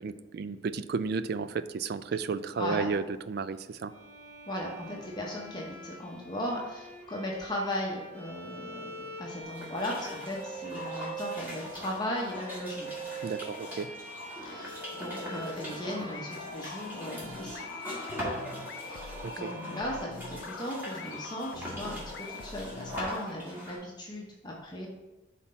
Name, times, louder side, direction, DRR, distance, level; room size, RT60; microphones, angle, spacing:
voice 1, 0.0-3.9 13.2-13.9 19.2-19.5, right 5 dB, 55° right, 12 dB, 0.3 m, -33 dB
Bowed string instrument, 3.9-20.9, right 3 dB, 5° left, 1.5 m, -45 dB
voice 2, 4.5-12.9 14.4-17.6 18.8-24.9, left 1 dB, 25° left, -2 dB, 0.8 m, -37 dB
sound 1, 9.4-23.8, left 1 dB, 10° right, 2.0 m, -41 dB
sound 2, 16.1-23.0, left 4 dB, 70° left, 0.4 m, -45 dB
5.8 x 4.2 x 5.5 m, 1.1 s
head